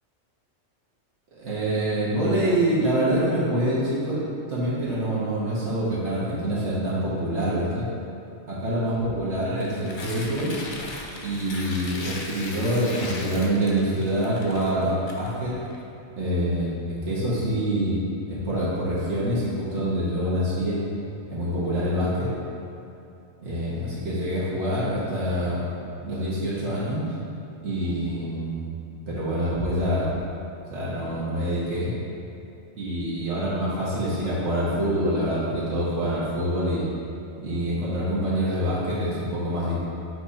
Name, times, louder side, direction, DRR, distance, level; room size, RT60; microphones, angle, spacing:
voice 1, 1.4-4.2 4.5-7.9 8.5-10.5 11.2-15.6 16.2-20.8 21.3-22.3 23.4-25.7 26.0-27.0 27.6-28.7 29.1-30.1 30.7-31.9 32.8-36.9 37.4-39.8, right 1 dB, 65° right, -8 dB, 1.7 m, -26 dB
Tearing, 9.5-15.8, left 2 dB, 45° left, 0.8 m, -38 dB
7.8 x 3.2 x 4.2 m, 2.7 s
omnidirectional pair, 1.3 m